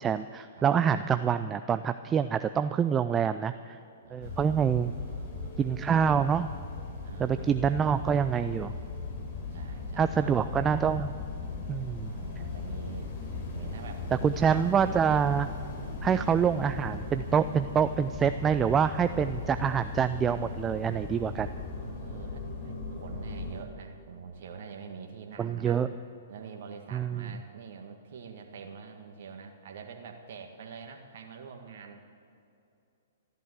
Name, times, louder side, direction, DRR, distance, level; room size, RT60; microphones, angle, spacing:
voice 1, 0.0-3.8 4.1-4.9 5.6-6.5 7.2-8.7 10.0-11.1 11.7-12.1 14.2-15.5 16.0-21.5 25.4-25.9 26.9-27.3, right 7 dB, 20° right, 11 dB, 0.4 m, -26 dB
voice 2, 4.0-4.6 4.8-5.9 7.0-7.8 9.5-10.3 12.0-13.1 13.5-14.6 16.0-16.3 21.8-25.8 26.3-32.0, right 6 dB, 60° right, 4 dB, 1.6 m, -45 dB
sound 1, 4.2-23.6, left 3 dB, 50° left, 3.9 m, -38 dB
14.0 x 12.0 x 8.2 m, 2.6 s
hypercardioid pair, 120°, 0 cm